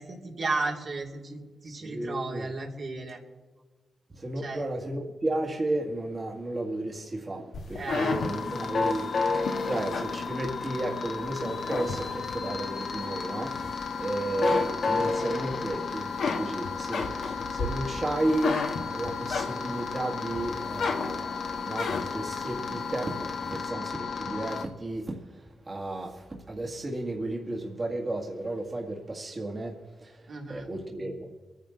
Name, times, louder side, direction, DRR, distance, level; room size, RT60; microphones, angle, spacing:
voice 1, 0.0-3.2 4.2-4.7 7.8-8.2 30.3-30.7, right 3 dB, 65° right, 2.8 m, -34 dB
voice 2, 1.6-2.5 4.1-16.1 16.3-18.6 18.9-31.4, right 1 dB, 40° right, 2.0 m, -33 dB
sound 1, 7.5-11.0 11.4-12.5 13.0-14.0 14.3-15.5 15.9-19.9 20.3-22.3, left 4 dB, 85° left, 1.7 m, -33 dB
sound 2, 8.1-24.6, left 4 dB, 65° left, 1.5 m, -33 dB
23.0 x 10.0 x 3.9 m
cardioid pair, 55°, 0 cm